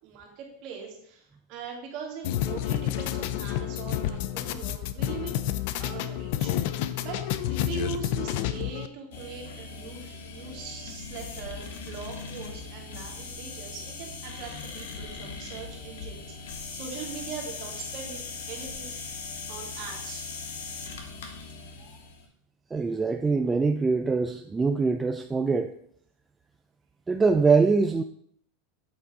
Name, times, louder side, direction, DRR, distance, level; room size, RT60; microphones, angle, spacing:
voice 1, 0.0-5.3 5.8-6.6 7.0-18.9 19.5-20.3, right 6 dB, 50° right, 0 dB, 2.4 m, -41 dB
sound 1, 2.2-8.9, left 12 dB, 60° left, 0.5 m, -29 dB
sound 2, 9.1-22.2, left 4 dB, 80° left, 1.4 m, -39 dB
voice 2, 22.7-25.7 27.1-28.0, right 4 dB, 10° right, 6 dB, 0.4 m, -23 dB
8.1 x 4.0 x 4.9 m, 0.66 s
supercardioid pair, 140°, 0 cm